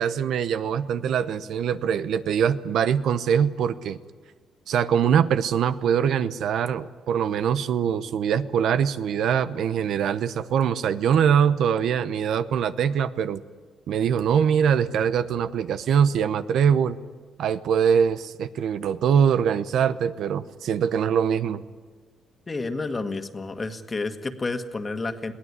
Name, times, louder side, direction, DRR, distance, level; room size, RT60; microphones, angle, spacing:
voice 1, 0.0-4.0 4.7-13.4 13.9-17.0 17.4-21.6, right 8 dB, 75° right, 13 dB, 0.9 m, -23 dB
voice 2, 22.5-25.3, left 3 dB, 30° left, 8 dB, 1.7 m, -30 dB
22.0 x 16.5 x 9.7 m, 1.5 s
cardioid pair, 90°, 0 cm